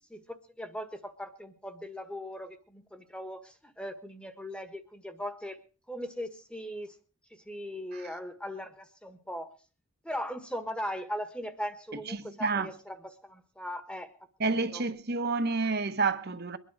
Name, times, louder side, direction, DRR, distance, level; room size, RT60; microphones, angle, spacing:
voice 1, 0.1-5.6 5.9-7.0 7.3-9.5 10.0-14.1 14.7-14.8, equal, 5° left, 1.4 m, -39 dB
voice 2, 12.1-12.7 14.4-16.6, right 3 dB, 45° right, 1.2 m, -29 dB
23.0 x 10.0 x 4.8 m
head